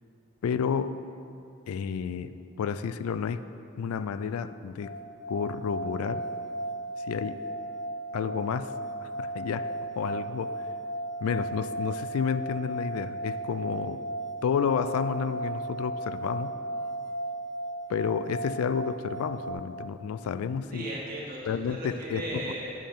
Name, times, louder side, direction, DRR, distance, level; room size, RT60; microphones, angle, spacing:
voice 1, 0.4-1.0 1.7-3.4 3.8-4.9 5.3-6.2 7.0-7.4 8.1-8.7 9.0-9.7 10.0-10.7 11.2-14.0 14.4-16.5 17.9-20.9 21.5-22.2, left 6 dB, 90° left, 13 dB, 0.3 m, -30 dB
sound 1, 4.8-19.5, right 1 dB, 20° left, 0.5 m, -35 dB
voice 2, 20.7-22.7, right 1 dB, 40° right, -6 dB, 1.9 m, -36 dB
9.9 x 7.6 x 3.5 m, 2.7 s
head